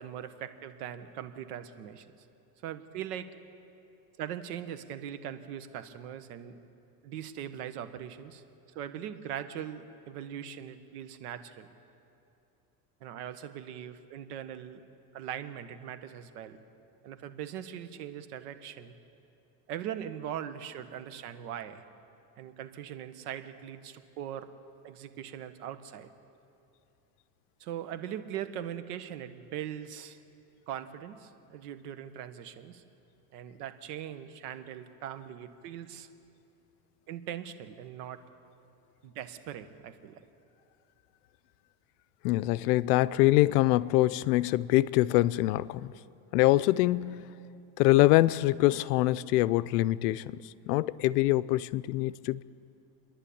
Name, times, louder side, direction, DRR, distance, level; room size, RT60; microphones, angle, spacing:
voice 1, 0.0-2.1 2.6-3.3 4.2-6.6 7.0-11.7 13.0-14.8 15.1-16.6 17.0-18.9 19.7-21.8 22.4-24.5 24.8-26.1 27.6-30.2 30.7-32.8 33.3-36.1 37.1-38.2 39.0-40.2, right 10 dB, 80° right, 1.5 m, -40 dB
voice 2, 42.2-45.9 46.3-47.4 47.8-50.4 50.7-52.4, left 17 dB, 75° left, 0.7 m, -24 dB
30.0 x 11.0 x 8.6 m
supercardioid pair, 140°, 46 cm